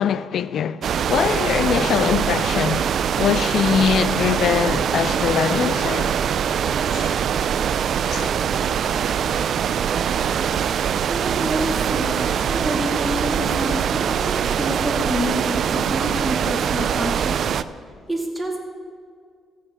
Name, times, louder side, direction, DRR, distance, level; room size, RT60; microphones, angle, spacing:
voice 1, 0.0-6.1 6.9-7.2 8.1-8.3, left 8 dB, 65° left, 0.4 m, -22 dB
sound 1, 0.8-17.6, right 8 dB, 60° right, 0.4 m, -23 dB
voice 2, 11.1-17.4 18.1-18.6, equal, 5° right, 2.1 m, -28 dB
14.5 x 5.6 x 7.1 m
cardioid pair, 90°, 0 cm